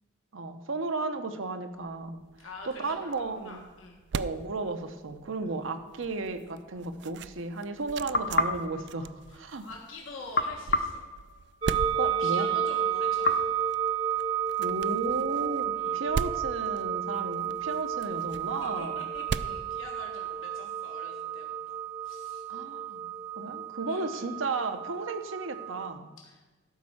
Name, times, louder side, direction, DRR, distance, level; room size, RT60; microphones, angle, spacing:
voice 1, 0.3-2.2 2.6-3.6 4.1-9.7 11.9-12.5 14.6-15.6 15.9-19.0 22.5-23.0 23.4-26.1, right 3 dB, 85° right, 8 dB, 0.9 m, -34 dB
sound 1, 1.8-20.6, right 5 dB, 60° right, 0.3 m, -41 dB
voice 2, 2.4-4.0 9.3-11.0 12.0-13.5 15.7-16.1 18.6-21.7 22.0-22.4 23.9-24.3 26.2-26.4, left 3 dB, 85° left, -1 dB, 1.5 m, -46 dB
sound 2, 8.1-9.7 10.3-12.0 13.2-14.6, left 2 dB, 50° left, 0.6 m, -32 dB
sound 3, 11.6-25.9, right 8 dB, 25° right, 0.7 m, -32 dB
12.0 x 5.3 x 7.2 m, 1.2 s
head